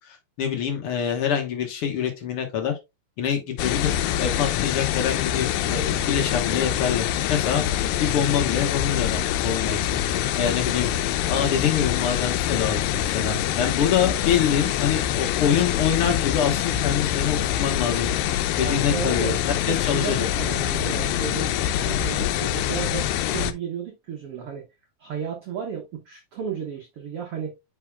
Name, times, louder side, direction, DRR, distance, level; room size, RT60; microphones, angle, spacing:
voice 1, 0.0-2.7 3.2-10.9 11.3-18.1 18.6-20.3, left 8 dB, 65° left, 1.4 m, -25 dB
sound 1, 3.6-23.5, left 11 dB, 80° left, 2.2 m, -25 dB
voice 2, 18.6-21.5 21.8-24.6 25.0-27.5, right 7 dB, 70° right, 1.3 m, -33 dB
9.2 x 4.9 x 2.2 m
omnidirectional pair, 4.1 m